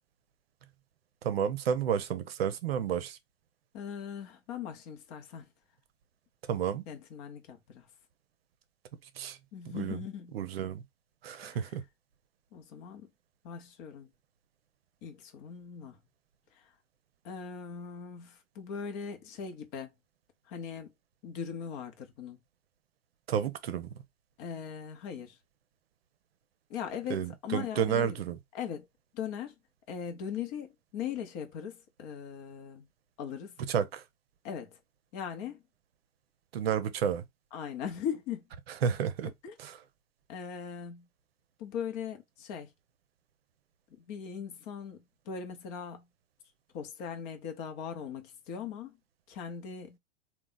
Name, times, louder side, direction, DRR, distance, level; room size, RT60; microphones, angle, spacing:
voice 1, 1.2-3.2 6.5-6.8 9.2-9.4 9.7-10.0 10.3-10.8 11.2-11.8 23.3-23.9 27.1-28.4 33.7-34.0 36.5-37.2 38.8-39.3 39.6-39.8, right 8 dB, 50° right, 0.7 m, -31 dB
voice 2, 3.7-5.5 6.9-7.9 9.5-10.3 11.4-11.6 12.5-13.1 13.4-14.1 15.0-16.0 16.5-16.7 17.2-19.9 20.5-20.9 21.2-22.4 24.4-25.4 26.7-28.2 28.5-28.9 29.1-29.5 29.9-32.9 33.2-33.6 34.4-34.8 35.1-35.6 37.5-38.4 39.4-39.5 40.3-41.1 41.6-42.7 43.9-46.1 46.7-49.0 49.3-50.0, left 7 dB, 35° left, 0.9 m, -39 dB
3.4 x 2.4 x 3.9 m
figure-of-eight pair, 105°, 37 cm